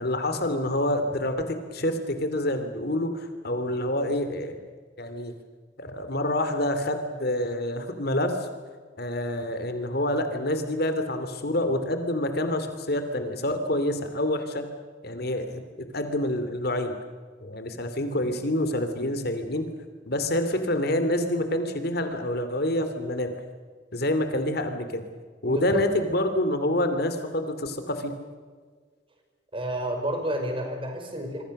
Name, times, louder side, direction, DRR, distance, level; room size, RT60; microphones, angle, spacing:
voice 1, 0.0-4.6 5.0-5.3 5.8-8.4 9.0-14.6 15.0-15.6 15.9-16.9 17.4-19.7 20.1-23.3 23.9-25.0 25.4-28.1, left 1 dB, 55° left, 8 dB, 2.7 m, -27 dB
voice 2, 25.4-25.8 29.5-31.4, right 1 dB, 30° right, 4 dB, 5.1 m, -30 dB
27.5 x 24.5 x 6.6 m, 1.6 s
head